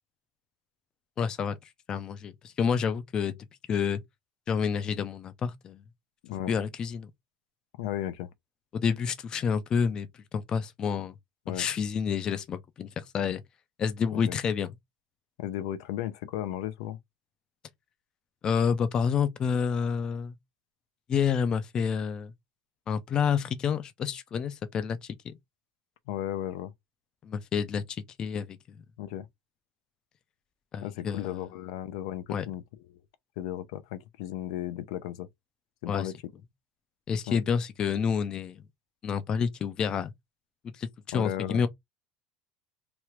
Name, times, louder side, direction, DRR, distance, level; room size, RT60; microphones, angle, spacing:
voice 1, 1.2-1.6 1.9-3.4 3.7-4.0 4.5-5.8 6.5-7.1 8.7-10.1 10.3-11.1 11.5-13.4 13.8-14.7 18.4-20.3 21.1-22.3 22.9-25.4 27.2-28.6 30.7-31.4 32.3-32.5 35.9-36.1 37.1-38.6 39.0-40.1 40.8-41.7, left 6 dB, 25° left, 0.4 m, -29 dB
voice 2, 7.8-8.3 11.5-11.7 14.1-14.3 15.4-17.0 26.1-26.7 29.0-29.3 30.8-32.6 33.4-35.3 35.8-36.1 37.3-37.4 41.1-41.6, left 12 dB, 85° left, 0.5 m, -35 dB
3.0 x 2.4 x 3.0 m
cardioid pair, 170°, 3 cm